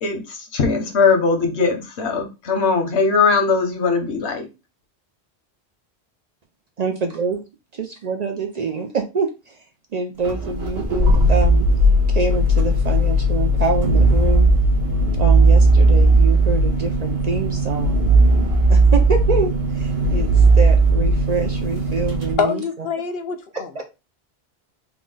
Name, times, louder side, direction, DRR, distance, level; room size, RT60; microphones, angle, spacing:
voice 1, 0.0-4.5, left 4 dB, 85° left, 1.2 m, -20 dB
voice 2, 6.8-7.4 7.7-9.6 9.9-11.7 12.1-14.5 15.2-18.0 18.7-22.6 23.5-23.6, right 4 dB, 50° right, 0.5 m, -25 dB
sound 1, 10.2-22.3, right 2 dB, 65° right, 1.6 m, -16 dB
voice 3, 22.4-23.8, left 6 dB, 70° left, 0.8 m, -25 dB
3.9 x 2.3 x 3.8 m
omnidirectional pair, 1.1 m